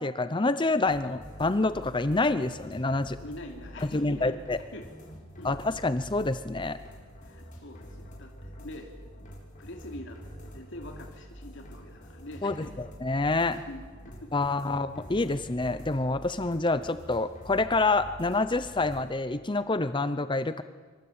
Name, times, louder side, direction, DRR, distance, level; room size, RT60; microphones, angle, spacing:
voice 1, 0.0-3.2 3.9-4.6 5.4-6.8 12.4-12.5 13.0-13.6 14.3-20.6, left 2 dB, 25° left, 12 dB, 0.7 m, -27 dB
sound 1, 0.9-19.0, equal, 40° left, 7.4 m, -47 dB
voice 2, 3.2-4.9 5.4-5.5 7.2-8.9 9.6-12.8 13.7-13.8 14.2-14.3, left 1 dB, 60° left, 2 dB, 3.1 m, -44 dB
26.0 x 25.0 x 8.8 m, 1.5 s
head